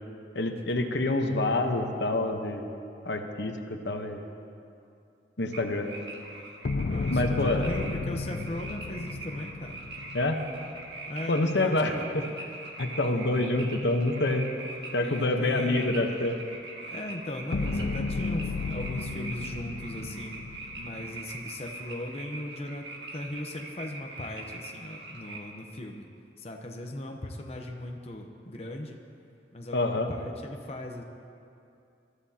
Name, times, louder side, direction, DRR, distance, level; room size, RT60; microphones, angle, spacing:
voice 1, 0.3-2.7 3.0-4.3 5.4-5.9 7.1-7.7 10.1-10.4 11.3-12.2 12.8-14.4 14.9-16.4 29.7-30.1, left 2 dB, 75° left, 4 dB, 1.0 m, -27 dB
sound 1, 5.5-25.4, right 2 dB, 75° right, 1.7 m, -42 dB
sound 2, 6.6-10.9 17.5-21.3, left 3 dB, 60° left, 0.4 m, -33 dB
voice 2, 6.9-9.8 11.1-12.1 15.0-16.2 16.9-22.9 23.1-26.1 26.4-29.0 29.5-31.0, left 1 dB, 35° left, 2 dB, 0.8 m, -38 dB
23.0 x 13.0 x 2.9 m, 2.6 s
head